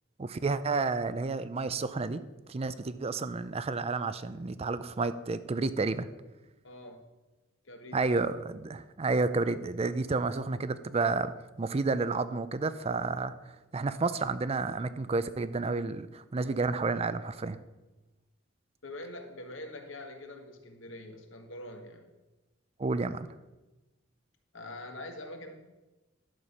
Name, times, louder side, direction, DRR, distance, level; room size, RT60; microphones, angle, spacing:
voice 1, 0.2-2.2 2.5-6.1 7.9-11.3 11.6-13.3 13.7-17.6 22.8-23.3, right 3 dB, 30° right, 13 dB, 0.4 m, -30 dB
voice 2, 6.6-7.1 7.6-8.3 18.8-22.1 24.5-25.6, left 1 dB, 80° left, 5 dB, 1.4 m, -44 dB
11.0 x 6.8 x 5.5 m, 1.1 s
head